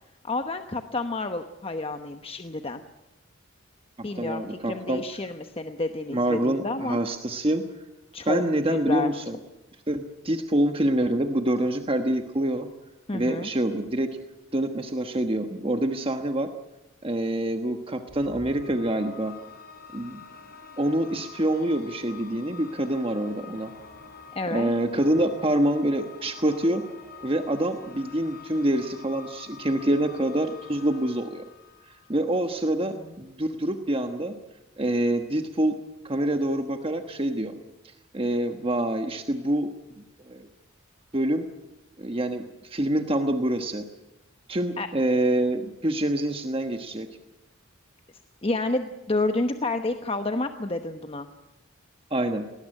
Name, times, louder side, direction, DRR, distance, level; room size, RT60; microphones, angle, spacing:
voice 1, 0.2-2.8 4.0-7.0 8.1-8.4 8.7-9.1 13.1-13.5 24.3-24.7 32.9-33.1 44.8-44.9 48.4-51.3, left 2 dB, 30° left, 7 dB, 1.0 m, -29 dB
voice 2, 4.2-5.0 6.1-7.7 8.3-9.4 9.9-12.7 13.1-14.1 14.5-16.5 17.0-19.3 19.9-20.2 20.8-23.7 24.5-26.8 27.2-31.4 31.9-34.4 34.8-35.8 36.0-37.5 37.8-39.7 40.0-40.5 41.1-41.5 42.0-43.8 44.5-47.1 52.1-52.5, right 1 dB, 25° right, 6 dB, 1.2 m, -26 dB
sound 1, 18.1-32.5, left 5 dB, 50° left, 4.2 m, -46 dB
20.0 x 18.5 x 10.0 m, 0.99 s
head